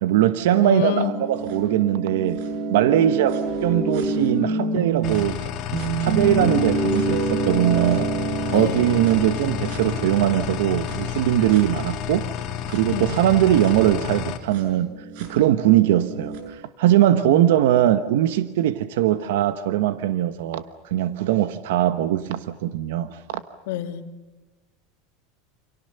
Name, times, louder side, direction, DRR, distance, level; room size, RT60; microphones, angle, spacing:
voice 1, 0.0-2.4 2.7-5.5 6.0-8.1 8.5-12.3 12.7-14.9 15.2-23.4, right 12 dB, 80° right, 11 dB, 1.2 m, -21 dB
voice 2, 0.5-1.2 3.0-3.1 8.5-8.8 12.9-13.0 17.2-17.5 23.7-24.0, left 12 dB, 70° left, 5 dB, 2.8 m, -27 dB
sound 1, 0.9-5.2 5.7-11.7 12.7-12.8 13.1-16.4, right 3 dB, 60° right, 7.4 m, -28 dB
sound 2, 5.0-14.4, left 9 dB, 40° left, 3.4 m, -30 dB
29.5 x 27.5 x 6.8 m, 1.1 s
supercardioid pair, 155°, 0 cm